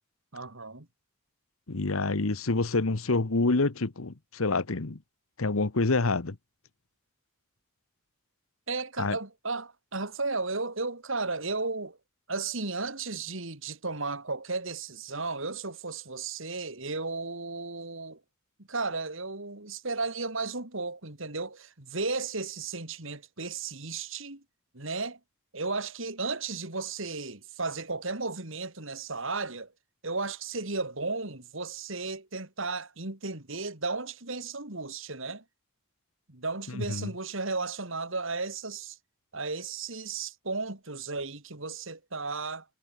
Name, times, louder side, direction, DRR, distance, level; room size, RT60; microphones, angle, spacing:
voice 1, 0.3-0.9 8.7-12.0 12.3-18.2 18.7-24.4 24.7-25.2 25.5-29.7 30.0-35.4 36.3-39.0 39.3-42.6, right 3 dB, 65° right, 3.3 m, -34 dB
voice 2, 1.7-5.0 5.4-6.4 9.0-9.2 36.8-37.1, left 3 dB, 80° left, 1.2 m, -27 dB
head